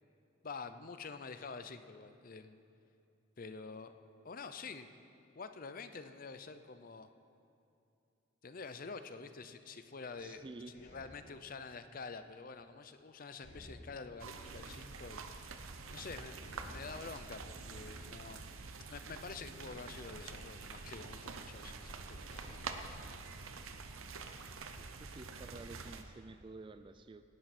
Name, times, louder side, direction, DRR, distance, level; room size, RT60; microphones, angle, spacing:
voice 1, 0.4-2.6 3.4-3.9 4.2-4.9 5.4-7.1 8.4-10.5 10.7-22.6, left 4 dB, 45° left, 10 dB, 0.6 m, -48 dB
sound 1, 10.1-12.9 13.4-15.4 15.7-15.8 16.4-18.8 19.3-20.9 21.7-21.8 22.1-23.9, left 1 dB, 65° left, 3.5 m, -58 dB
voice 2, 10.2-10.8 24.8-27.2, right 3 dB, 25° right, 11 dB, 0.3 m, -51 dB
sound 2, 14.2-26.0, right 4 dB, 90° right, 0.8 m, -47 dB
18.0 x 10.5 x 4.3 m, 2.7 s
head